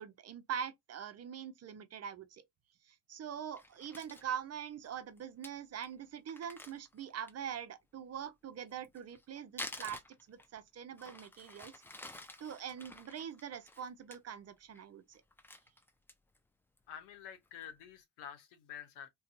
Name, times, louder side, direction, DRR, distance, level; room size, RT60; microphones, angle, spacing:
voice 1, 0.0-2.4 2.9-10.0 10.3-11.7 12.0-15.2, right 8 dB, 40° right, 0.6 m, -43 dB
Crumpling crinkling, 3.6-4.3 4.8-4.9 5.2-5.3 5.4-5.5 5.8-5.9 6.3-7.5 8.7-10.6 11.0-14.2 14.6-14.8 15.1-16.4 16.8-16.9 17.3-17.7, left 1 dB, 5° left, 0.4 m, -49 dB
voice 2, 16.9-19.1, left 9 dB, 75° left, 0.9 m, -49 dB
2.7 x 2.2 x 2.5 m
hypercardioid pair, 60°, 41 cm